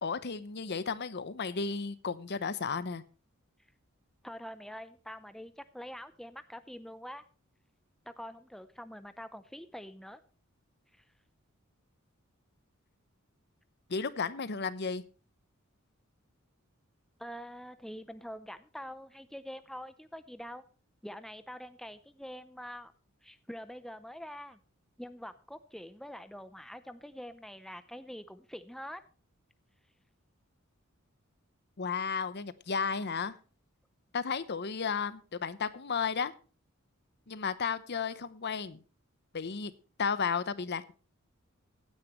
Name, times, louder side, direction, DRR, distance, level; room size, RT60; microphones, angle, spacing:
voice 1, 0.0-3.0 13.9-15.0 31.8-33.3 34.1-36.3 37.3-38.8 39.3-39.7 40.0-40.9, left 5 dB, 50° left, 15 dB, 0.8 m, -33 dB
voice 2, 4.2-7.2 8.1-10.2 17.2-20.6 21.0-22.9 23.2-24.6 25.0-29.0, equal, ahead, 12 dB, 0.6 m, -45 dB
16.0 x 9.8 x 3.1 m, 0.38 s
head